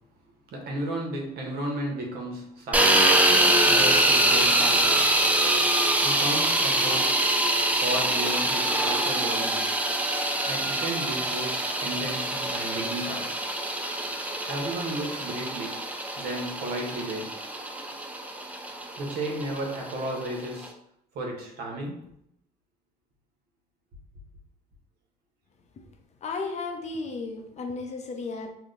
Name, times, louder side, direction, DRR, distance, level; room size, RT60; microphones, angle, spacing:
voice 1, 0.5-3.2 3.7-5.1 6.0-7.3 7.8-9.6 10.5-13.3 14.5-15.8 16.2-17.4 19.0-20.7 21.1-22.1, right 1 dB, 70° right, 0 dB, 0.9 m, -33 dB
sound 1, 2.7-20.7, right 1 dB, 10° right, 0.3 m, -24 dB
voice 2, 26.2-28.5, left 3 dB, 40° left, 4 dB, 0.6 m, -34 dB
2.8 x 2.1 x 3.7 m, 0.76 s
cardioid pair, 110°, 17 cm